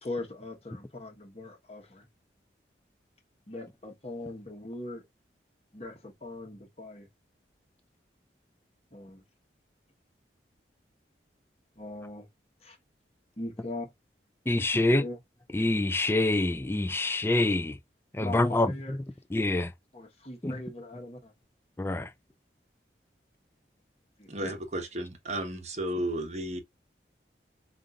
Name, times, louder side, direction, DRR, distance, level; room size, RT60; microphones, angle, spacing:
voice 1, 0.0-2.1 3.5-5.0 5.7-7.1 8.9-9.2 11.8-12.3 12.6-12.8 13.4-13.9 14.7-15.2 18.2-19.0 19.9-21.3 24.2-24.3, left 2 dB, 35° left, 1.1 m, -40 dB
voice 2, 14.5-15.1 15.5-17.8 18.1-19.0 19.3-19.7 20.4-20.6 21.8-22.1, left 2 dB, 15° left, 0.3 m, -26 dB
voice 3, 24.3-26.6, right 1 dB, 40° right, 1.0 m, -33 dB
5.2 x 2.5 x 2.4 m
head